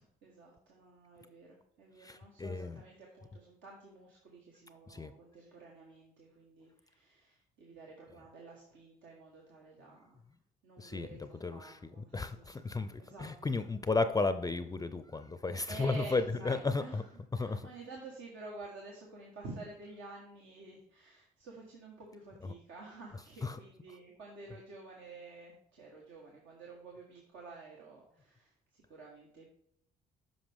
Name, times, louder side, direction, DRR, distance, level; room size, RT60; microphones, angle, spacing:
voice 1, 0.0-10.2 10.6-13.3 15.7-28.5 28.9-29.5, right 3 dB, 75° right, -2 dB, 1.4 m, -50 dB
voice 2, 2.0-2.8 4.9-5.1 10.8-11.1 11.4-11.8 12.1-17.0 17.3-17.7 23.4-23.6, left 3 dB, 20° left, 11 dB, 0.5 m, -34 dB
7.9 x 5.3 x 3.6 m, 0.71 s
supercardioid pair, 65°, 20 cm